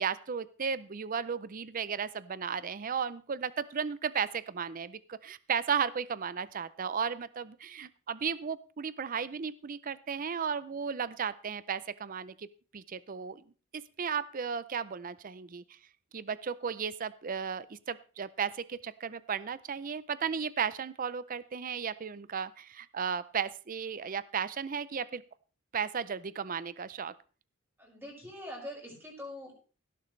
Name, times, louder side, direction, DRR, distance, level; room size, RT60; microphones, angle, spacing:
voice 1, 0.0-12.5 12.7-13.4 13.7-15.8 16.1-25.2 25.7-27.1, right 6 dB, 40° right, 16 dB, 0.5 m, -35 dB
voice 2, 27.8-29.5, left 1 dB, 10° right, -2 dB, 5.8 m, -43 dB
17.0 x 11.0 x 3.2 m, 0.37 s
head